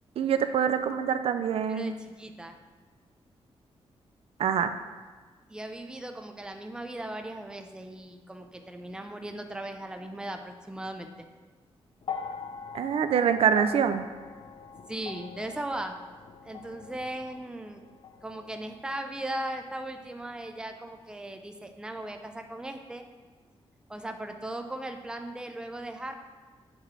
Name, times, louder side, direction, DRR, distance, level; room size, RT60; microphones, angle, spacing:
voice 1, 0.2-1.9 4.4-4.7 12.7-14.1, right 8 dB, 70° right, 9 dB, 0.4 m, -25 dB
voice 2, 1.7-2.6 5.5-11.3 14.9-16.0 16.4-17.8 18.2-23.0 23.9-26.1, right 1 dB, 10° right, 6 dB, 0.5 m, -38 dB
sound 1, 12.0-20.4 21.4-21.5, left 6 dB, 55° left, 0.5 m, -43 dB
7.3 x 3.2 x 6.1 m, 1.4 s
wide cardioid pair, 125°, 10 cm